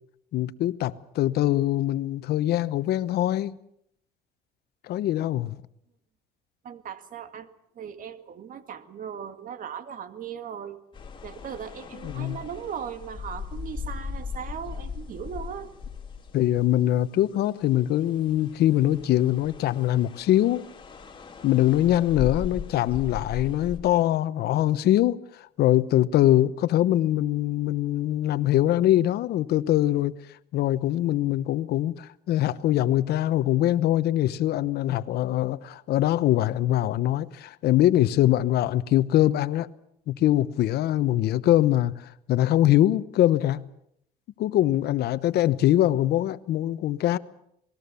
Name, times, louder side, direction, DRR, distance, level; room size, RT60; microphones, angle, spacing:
voice 1, 0.3-3.6 4.8-5.5 12.0-12.4 16.3-20.6 21.4-30.2 30.5-39.7 40.1-41.9 42.3-43.6 44.4-47.2, left 13 dB, 70° left, 1.0 m, -23 dB
voice 2, 6.6-7.5 7.8-10.8 11.2-15.7, right 8 dB, 55° right, 2.0 m, -38 dB
sound 1, 10.9-17.1 17.6-23.8, left 6 dB, 30° left, 3.5 m, -39 dB
27.5 x 20.0 x 7.0 m
cardioid pair, 110°, 17 cm